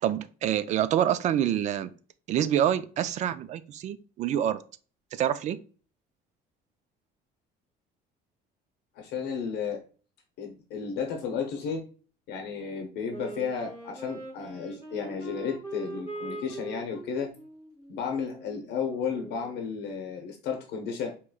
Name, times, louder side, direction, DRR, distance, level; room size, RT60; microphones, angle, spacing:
voice 1, 0.0-1.9 2.3-4.6 5.1-5.6, right 10 dB, 45° right, 13 dB, 0.4 m, -26 dB
voice 2, 9.0-9.8 10.4-11.8 12.3-17.3 17.9-21.1, left 6 dB, 70° left, 3 dB, 0.8 m, -33 dB
Wind instrument woodwind instrument, 13.1-19.7, right 2 dB, 15° right, 2.0 m, -42 dB
4.7 x 3.0 x 2.3 m, 0.39 s
cardioid pair, 160°, 18 cm